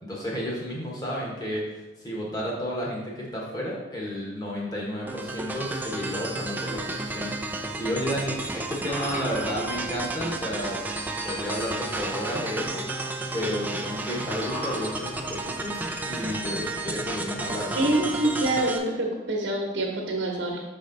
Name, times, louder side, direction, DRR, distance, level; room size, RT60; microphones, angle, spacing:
voice 1, 0.0-10.8 11.2-13.0 13.3-17.9, equal, 20° left, -3 dB, 1.3 m, -32 dB
sound 1, 5.1-18.8, right 2 dB, 10° right, 0.4 m, -32 dB
sound 2, 5.9-16.8, equal, 50° left, 1.9 m, -45 dB
voice 2, 17.7-20.6, right 1 dB, 75° right, 0 dB, 1.0 m, -26 dB
6.4 x 4.2 x 4.0 m, 1.1 s
head